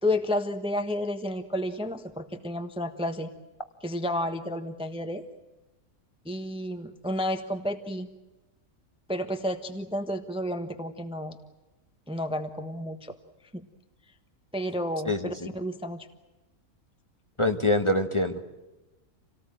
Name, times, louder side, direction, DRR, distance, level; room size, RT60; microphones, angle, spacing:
voice 1, 0.0-3.3 3.8-5.2 6.2-8.1 9.1-11.4 12.1-13.1 13.5-13.6 14.5-16.1, left 1 dB, 5° right, 8 dB, 1.2 m, -31 dB
voice 2, 17.4-18.5, left 1 dB, 20° left, 6 dB, 1.5 m, -25 dB
28.0 x 18.5 x 9.0 m, 1.1 s
omnidirectional pair, 1.6 m